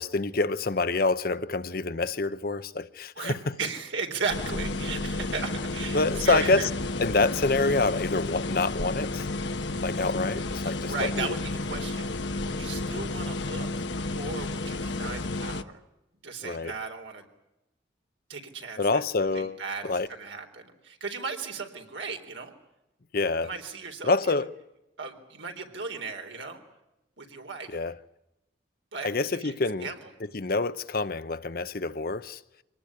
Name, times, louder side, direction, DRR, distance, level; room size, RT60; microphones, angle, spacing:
voice 1, 0.0-3.3 5.9-6.7 7.0-9.3 9.8-11.3 16.4-16.7 18.8-19.6 19.8-20.1 23.1-23.5 24.0-24.5 27.7-28.0 29.0-29.9 30.3-32.4, left 3 dB, 50° left, 0.8 m, -27 dB
voice 2, 3.2-6.7 10.6-13.9 14.2-15.8 16.2-17.2 18.3-19.0 19.3-22.5 23.4-24.1 25.0-26.6 27.2-27.8 28.9-29.5 29.8-30.1, right 4 dB, 80° right, 3.8 m, -36 dB
sound 1, 4.3-15.6, left 2 dB, 70° left, 1.1 m, -32 dB
24.5 x 19.0 x 9.8 m
head